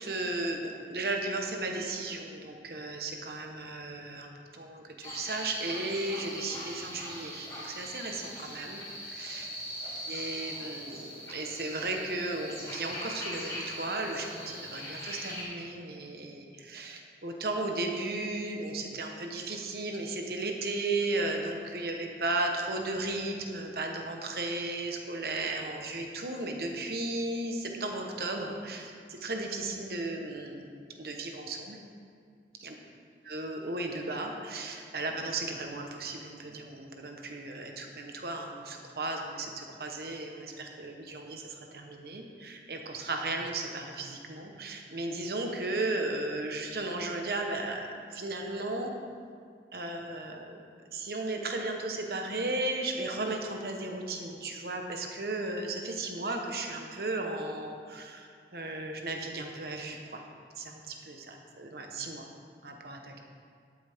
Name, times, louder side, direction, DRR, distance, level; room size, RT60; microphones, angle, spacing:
voice 1, 0.0-9.5 10.1-30.7 31.0-31.8 32.6-32.7 33.2-48.9 49.7-50.6 50.9-60.2 60.6-62.2 62.6-63.2, right 2 dB, 60° right, 3 dB, 1.1 m, -35 dB
sound 1, 5.0-15.4, equal, 20° left, 2.3 m, -41 dB
12.0 x 8.5 x 3.6 m, 2.2 s
head